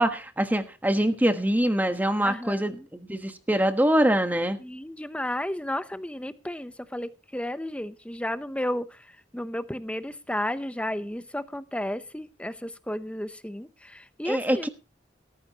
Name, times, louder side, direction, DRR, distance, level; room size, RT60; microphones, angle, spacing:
voice 1, 0.0-4.6 14.2-14.7, right 1 dB, 10° right, 8 dB, 1.3 m, -24 dB
voice 2, 2.2-2.9 4.6-8.8 9.3-14.7, left 1 dB, 5° left, 12 dB, 0.8 m, -33 dB
17.0 x 14.0 x 2.9 m, 0.32 s
head